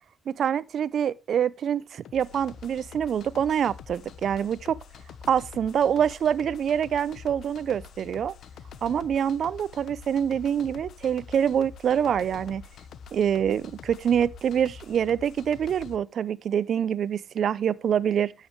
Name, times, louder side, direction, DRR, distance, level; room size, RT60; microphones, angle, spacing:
voice 1, 0.3-4.8 5.3-8.3 8.8-12.6 13.1-18.3, right 8 dB, 60° right, 0.6 m, -25 dB
sound 1, 2.0-16.0, left 7 dB, 65° left, 1.1 m, -46 dB
10.5 x 8.3 x 3.3 m
cardioid pair, 90°, 0 cm